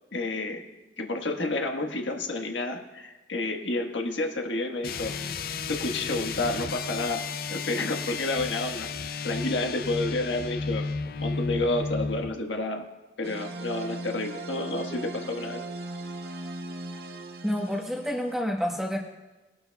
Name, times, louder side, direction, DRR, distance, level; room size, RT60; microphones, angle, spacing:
voice 1, 0.1-0.6 1.0-5.1 5.7-7.2 7.5-8.9 9.2-10.8 11.2-12.8 13.2-15.6, left 2 dB, 80° left, 2 dB, 1.4 m, -30 dB
sound 1, 4.8-12.3, left 4 dB, 50° left, 0.5 m, -33 dB
sound 2, 13.2-18.4, right 2 dB, 55° right, 0.8 m, -38 dB
voice 2, 17.4-19.0, equal, ahead, 0 dB, 1.1 m, -28 dB
20.0 x 11.5 x 2.3 m, 1.1 s
head